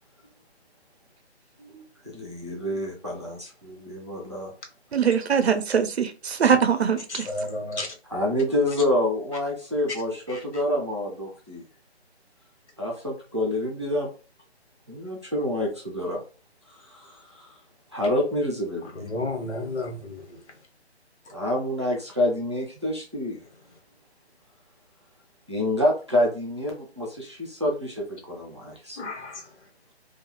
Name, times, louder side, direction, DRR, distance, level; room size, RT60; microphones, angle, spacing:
voice 1, 2.0-4.5 8.1-11.6 12.8-14.1 14.9-16.2 16.7-17.6 17.9-19.0 21.3-23.4 25.5-29.0, left 1 dB, 25° right, 0.5 m, -27 dB
voice 2, 4.9-7.3, right 7 dB, 70° right, 0.5 m, -22 dB
voice 3, 7.1-7.9 10.3-10.4 18.9-20.4 29.0-29.6, left 2 dB, 85° left, 1.1 m, -32 dB
2.3 x 2.3 x 3.0 m
hypercardioid pair, 175°, 33 cm